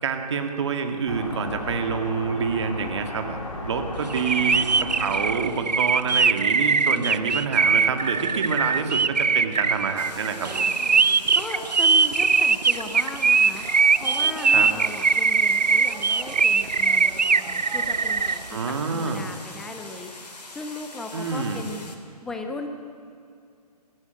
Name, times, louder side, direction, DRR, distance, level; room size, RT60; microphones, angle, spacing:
voice 1, 0.0-10.6 14.4-14.7 18.5-19.3 21.1-21.7, right 5 dB, 45° right, 6 dB, 2.1 m, -27 dB
sound 1, 1.1-5.4, left 2 dB, 50° left, 4.5 m, -35 dB
sound 2, 4.1-18.4, right 5 dB, 80° right, 0.8 m, -21 dB
voice 2, 4.8-5.3 6.9-7.3 11.3-13.6 14.0-22.7, left 3 dB, ahead, 5 dB, 0.4 m, -37 dB
sound 3, 10.0-22.0, left 3 dB, 75° left, 3.2 m, -43 dB
19.5 x 15.5 x 9.1 m, 2.4 s
figure-of-eight pair, 150°, 21 cm